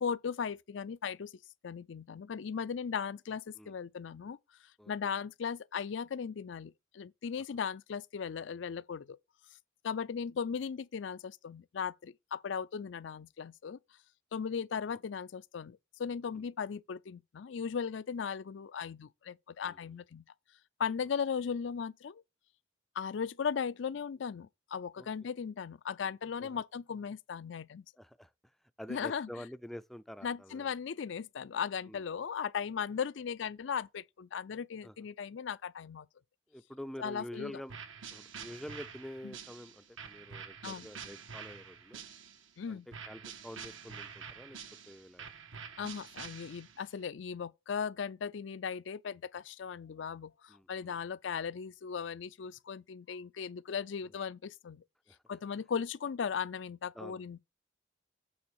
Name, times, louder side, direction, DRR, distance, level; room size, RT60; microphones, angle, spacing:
voice 1, 0.0-1.3 1.6-4.4 4.9-9.2 9.8-13.8 14.3-20.2 20.8-22.2 23.0-27.8 28.9-29.3 30.2-36.1 37.0-37.5 39.2-39.3 40.6-40.9 42.6-42.9 45.8-54.8 55.3-57.4, left 6 dB, 70° left, 0.4 m, -37 dB
voice 2, 28.0-28.3 28.8-30.7 31.8-32.0 34.8-34.9 36.5-37.8 38.1-42.0 42.7-44.6 44.9-45.3 50.5-51.0 54.0-54.1 55.1-55.2 56.9-57.2, equal, ahead, 0.4 m, -47 dB
sound 1, 37.7-42.5 42.9-46.9, right 6 dB, 90° right, 1.4 m, -47 dB
8.6 x 3.8 x 6.4 m
head